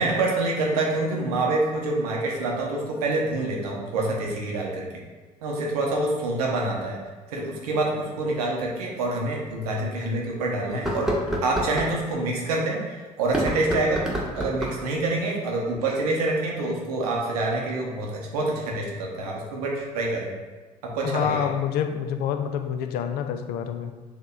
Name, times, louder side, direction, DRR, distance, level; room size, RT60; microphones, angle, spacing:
voice 1, 0.0-4.9 5.4-7.0 7.3-11.1 11.4-14.0 14.3-20.3 20.8-21.5, right 2 dB, 70° right, -2 dB, 0.9 m, -26 dB
sound 1, 8.8-8.9 9.4-9.5 10.7-11.9 13.2-14.9, equal, 5° right, 1.0 m, -28 dB
voice 2, 21.0-24.0, left 8 dB, 50° left, 8 dB, 0.4 m, -27 dB
6.7 x 2.9 x 2.4 m, 1.3 s
figure-of-eight pair, 55°, 20 cm